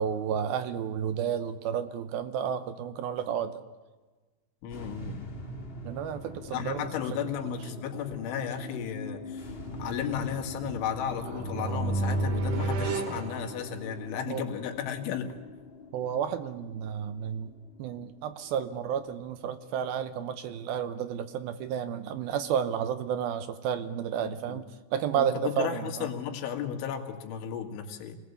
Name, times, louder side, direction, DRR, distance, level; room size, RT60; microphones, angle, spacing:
voice 1, 0.0-3.6 5.8-6.9 7.2-7.3 11.5-11.8 14.3-14.4 15.9-17.5 17.8-24.6 24.9-26.1, right 8 dB, 75° right, 11 dB, 2.3 m, -31 dB
voice 2, 4.6-5.4 6.5-9.5 9.8-15.3 24.2-24.6 25.1-28.2, left 8 dB, 90° left, 4 dB, 4.4 m, -34 dB
sound 1, 4.7-21.1, left 2 dB, 50° left, 0.6 m, -44 dB
sound 2, 11.1-14.1, right 2 dB, 55° right, 2.8 m, -31 dB
27.5 x 19.5 x 8.4 m, 1.3 s
omnidirectional pair, 5.3 m